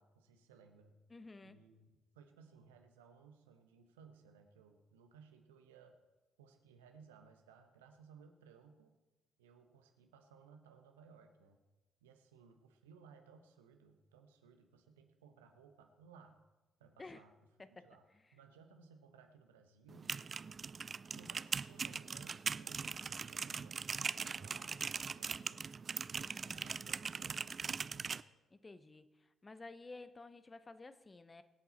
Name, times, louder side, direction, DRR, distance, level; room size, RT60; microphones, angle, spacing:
voice 1, 0.0-1.0 1.4-5.9 6.4-8.9 9.4-11.6 12.0-16.4 16.8-17.3 17.7-18.0 18.3-20.7 21.2-25.7 26.2-28.2, right 5 dB, 80° right, 6 dB, 1.1 m, -62 dB
voice 2, 1.1-1.6 17.0-17.2 17.8-17.9 26.1-26.9 28.6-29.1 29.4-31.4, left 3 dB, 25° left, 12 dB, 0.9 m, -53 dB
sound 1, 19.9-28.2, right 5 dB, 40° right, 0.3 m, -41 dB
24.0 x 8.3 x 4.3 m, 1.1 s
figure-of-eight pair, 40°, 0 cm